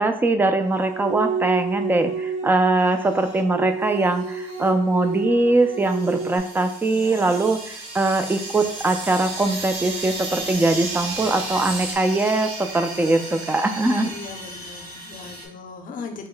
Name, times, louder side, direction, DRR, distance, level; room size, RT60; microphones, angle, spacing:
voice 1, 0.0-7.6 7.9-14.1, right 2 dB, 10° right, 8 dB, 0.3 m, -21 dB
sound 1, 0.6-6.4, right 5 dB, 45° right, 1.1 m, -30 dB
sound 2, 3.0-3.4 3.9-4.7 5.0-5.2 5.7-15.5, right 2 dB, 90° right, 1.6 m, -36 dB
sound 3, 5.8-12.0, right 3 dB, 70° right, 0.8 m, -36 dB
voice 2, 6.9-7.3 13.9-16.3, left 4 dB, 55° left, 4 dB, 0.6 m, -38 dB
4.1 x 2.1 x 3.8 m, 0.68 s
cardioid pair, 110°, 17 cm